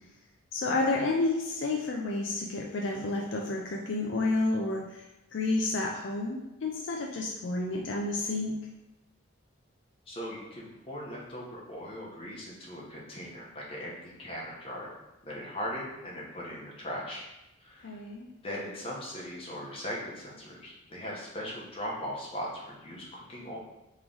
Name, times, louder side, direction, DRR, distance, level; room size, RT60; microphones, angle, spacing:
voice 1, 0.5-8.5 17.8-18.3, left 2 dB, 60° left, 0 dB, 0.4 m, -30 dB
voice 2, 10.1-14.9 15.2-17.2 17.6-18.0 18.4-23.6, equal, 25° left, -5 dB, 0.9 m, -39 dB
3.6 x 3.1 x 3.9 m, 0.96 s
head